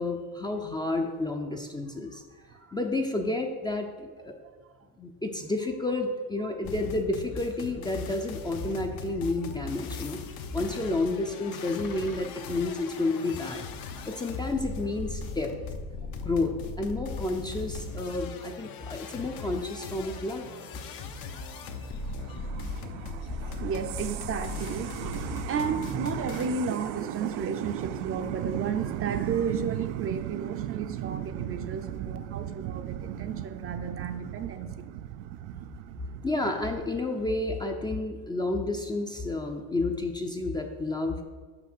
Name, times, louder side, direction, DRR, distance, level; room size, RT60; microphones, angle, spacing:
voice 1, 0.0-2.2 2.7-4.3 5.0-10.2 10.5-13.6 14.1-15.5 16.2-20.5 23.1-23.2 36.2-41.2, left 2 dB, 10° left, 3 dB, 0.5 m, -30 dB
sound 1, 6.6-26.5, left 4 dB, 65° left, 0.9 m, -39 dB
sound 2, 20.7-37.3, right 12 dB, 80° right, 0.5 m, -37 dB
voice 2, 23.6-34.8, right 5 dB, 35° right, 8 dB, 0.6 m, -33 dB
5.9 x 5.8 x 6.1 m, 1.5 s
cardioid pair, 130°, 39 cm